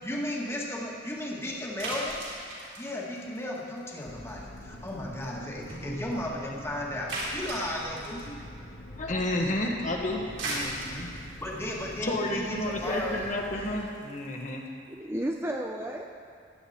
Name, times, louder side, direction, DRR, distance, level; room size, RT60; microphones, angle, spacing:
voice 1, 0.0-2.2 2.8-8.4 11.4-13.2, left 1 dB, 15° left, -3 dB, 1.7 m, -35 dB
sound 1, 1.8-4.0 4.3-4.6 4.9-5.0 5.2-5.3 5.6-5.7 6.1-6.2 7.1-8.3 10.1-14.5, right 1 dB, 75° right, 3.8 m, -37 dB
sound 2, 4.0-13.7, left 1 dB, 85° left, 1.7 m, -45 dB
sound 3, 5.7-7.6, equal, 50° right, 2.9 m, -47 dB
voice 2, 9.0-11.1 12.0-14.6, left 1 dB, 45° left, 0 dB, 1.3 m, -31 dB
voice 3, 12.8-13.2 13.7-13.8 14.9-16.1, right 1 dB, 15° right, 1 dB, 0.6 m, -34 dB
16.0 x 10.0 x 4.3 m, 2.3 s
head